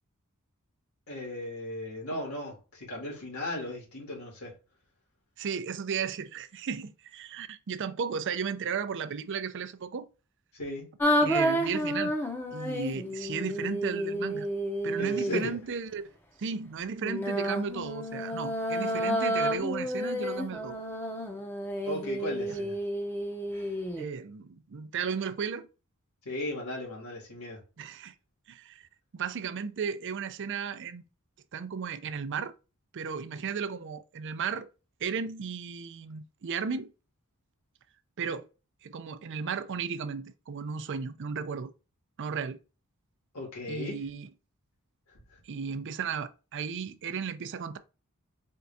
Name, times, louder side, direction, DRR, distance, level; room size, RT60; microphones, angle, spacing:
voice 1, 1.1-4.5 10.5-10.9 15.0-15.6 21.9-22.8 26.2-27.6 43.3-44.0 45.1-45.4, left 1 dB, 90° left, 2.4 m, -36 dB
voice 2, 5.4-10.1 11.2-12.1 12.5-14.5 14.8-16.1 16.4-20.8 24.0-25.7 27.8-28.1 28.5-28.9 29.1-31.0 31.5-32.5 32.9-34.7 35.0-36.9 38.2-38.5 38.8-41.7 42.2-42.6 43.7-44.3 45.4-47.8, right 6 dB, 55° right, 0.5 m, -34 dB
sound 1, 11.0-15.5 17.0-24.0, equal, 10° left, 0.7 m, -30 dB
4.5 x 3.6 x 2.7 m
head